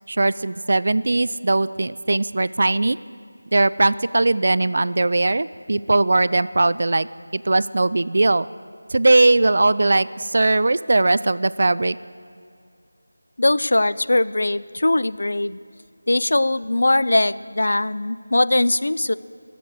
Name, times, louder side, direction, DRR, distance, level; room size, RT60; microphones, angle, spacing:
voice 1, 0.0-3.0 3.5-7.1 7.3-8.5 8.9-12.0, right 2 dB, 50° right, 17 dB, 0.3 m, -19 dB
voice 2, 13.4-15.6 16.1-19.1, left 2 dB, 65° left, 16 dB, 0.4 m, -20 dB
20.0 x 7.7 x 6.6 m, 2.4 s
figure-of-eight pair, 175°, 0 cm